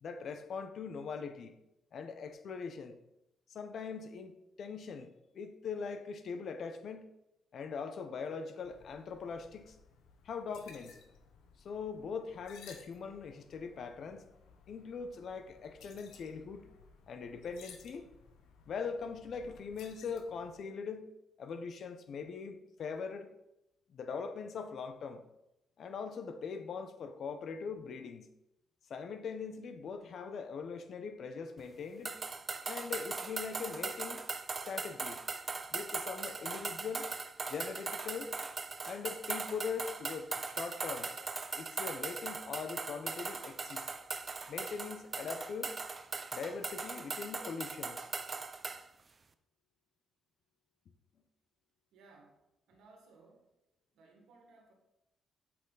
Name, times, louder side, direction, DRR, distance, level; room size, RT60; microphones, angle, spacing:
voice 1, 0.0-1.6 1.9-3.0 3.5-7.1 7.5-9.8 10.2-11.0 11.6-14.3 14.7-16.7 17.1-18.1 18.7-21.1 21.4-23.3 23.9-25.2 25.8-28.3 28.9-32.2 32.7-34.2 34.7-35.2 35.7-37.1 37.5-38.4 38.8-41.1 41.5-43.9 44.5-45.7 46.3-48.1, left 5 dB, 60° left, 9 dB, 0.9 m, -41 dB
sound 1, 8.6-20.6, left 6 dB, 85° left, 1.1 m, -58 dB
sound 2, 32.1-48.8, right 4 dB, 35° right, 0.6 m, -40 dB
voice 2, 51.9-52.4 52.7-53.5 53.9-54.7, right 3 dB, 80° right, 1 dB, 1.8 m, -61 dB
8.2 x 6.1 x 4.0 m, 0.87 s
cardioid pair, 90°, 0 cm